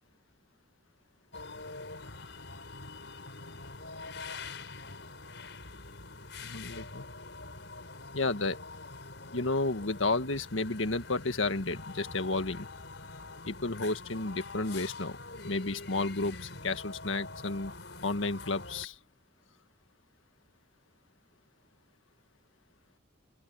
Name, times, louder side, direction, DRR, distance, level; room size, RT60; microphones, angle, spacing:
sound 1, 1.3-18.9, left 3 dB, 65° left, 5.2 m, -45 dB
voice 1, 6.4-7.1 8.1-8.6 9.3-12.7 13.5-15.2 15.4-17.7 18.0-19.0, left 3 dB, 85° left, 1.7 m, -32 dB
open air
head